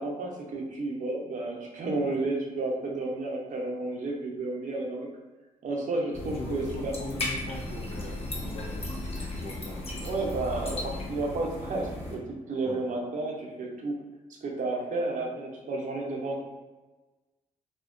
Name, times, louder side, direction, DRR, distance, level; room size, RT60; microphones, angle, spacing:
voice 1, 0.0-5.1 5.6-7.0 10.0-14.0 14.4-16.4, right 2 dB, 60° right, -1 dB, 0.6 m, -32 dB
sound 1, 6.1-12.2, left 2 dB, 40° left, 0.7 m, -36 dB
voice 2, 6.2-10.0 12.6-12.8, left 2 dB, 80° left, 1 dB, 0.5 m, -41 dB
2.6 x 2.2 x 2.4 m, 1.2 s
supercardioid pair, 60°, 15 cm